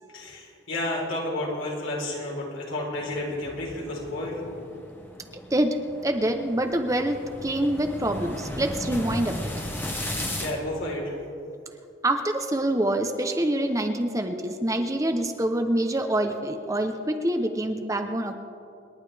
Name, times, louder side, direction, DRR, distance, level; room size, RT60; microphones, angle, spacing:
voice 1, 0.1-4.4 10.0-11.2, left 1 dB, 85° left, -2 dB, 3.9 m, -31 dB
sound 1, 2.9-10.5, left 1 dB, 10° left, 1.3 m, -36 dB
voice 2, 6.0-9.5 12.0-18.3, right 1 dB, 15° right, 5 dB, 0.7 m, -26 dB
27.5 x 11.5 x 3.4 m, 2.6 s
head